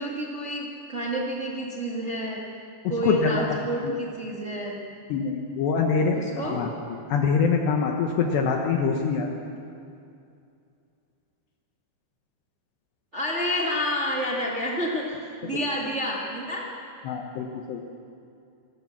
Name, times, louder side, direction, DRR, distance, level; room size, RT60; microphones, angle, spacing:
voice 1, 0.0-2.4 2.9-4.8 6.1-6.7 13.1-15.2 15.4-16.7, equal, 85° right, -3 dB, 0.6 m, -29 dB
voice 2, 3.0-3.4 3.8-3.9 5.1-6.2 6.5-6.7 7.1-9.3 17.0-17.8, left 5 dB, 70° left, 1 dB, 3.2 m, -24 dB
27.0 x 13.5 x 7.4 m, 2.5 s
omnidirectional pair, 5.4 m